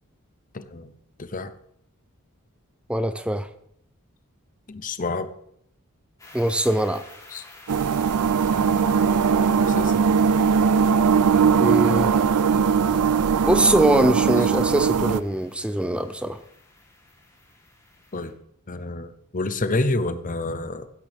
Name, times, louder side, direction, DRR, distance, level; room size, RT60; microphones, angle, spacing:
voice 1, 0.5-0.9 1.2-1.5 4.7-5.3 7.3-7.5 8.5-9.1 9.7-10.0 18.1-18.3 18.7-20.9, left 2 dB, 35° left, 11 dB, 0.8 m, -29 dB
voice 2, 2.9-3.5 6.3-7.0 11.6-12.2 13.4-16.4, right 1 dB, 5° right, 11 dB, 0.5 m, -22 dB
sound 1, 6.2-18.3, left 2 dB, 15° left, 3.3 m, -50 dB
sound 2, 7.7-15.2, right 6 dB, 90° right, 0.5 m, -20 dB
15.5 x 12.5 x 3.5 m, 0.71 s
head